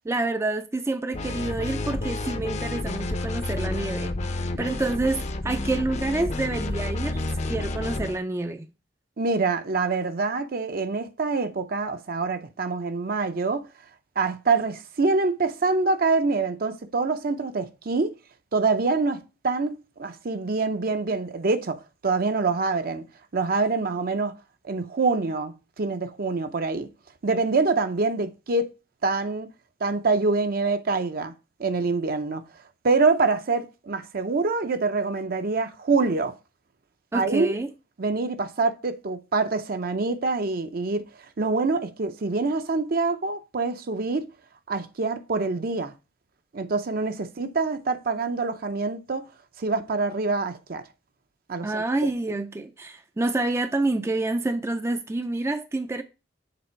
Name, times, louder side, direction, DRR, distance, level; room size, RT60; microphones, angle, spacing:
voice 1, 0.0-4.2 4.6-7.2 7.5-8.7 37.1-37.7 51.6-56.0, right 2 dB, 15° right, 0.4 m, -28 dB
sound 1, 1.1-8.2, left 2 dB, 40° left, 0.6 m, -30 dB
voice 2, 9.2-13.7 14.2-18.1 18.5-23.0 23.3-24.4 24.6-26.9 27.2-28.7 29.0-29.5 29.8-31.3 31.6-32.4 32.8-36.4 37.1-37.6 38.0-41.1 41.4-44.3 44.7-45.9 46.5-49.3 49.6-50.8 51.5-51.8, right 3 dB, 55° right, 0.6 m, -25 dB
6.9 x 3.8 x 4.3 m
head